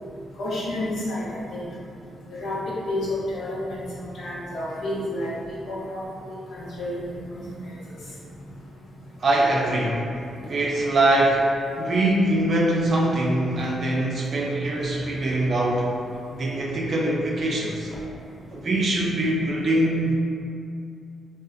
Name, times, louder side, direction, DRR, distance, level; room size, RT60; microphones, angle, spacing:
voice 1, 0.4-1.6 2.3-3.8 4.2-5.3 5.7-6.0 6.5-7.0, left 1 dB, 70° left, -7 dB, 0.6 m, -30 dB
voice 2, 9.2-10.0 10.5-11.5 11.8-15.9 16.3-17.9 18.5-20.2, right 1 dB, 55° right, -3 dB, 0.4 m, -23 dB
2.5 x 2.0 x 2.3 m, 2.5 s
cardioid pair, 75°, 0 cm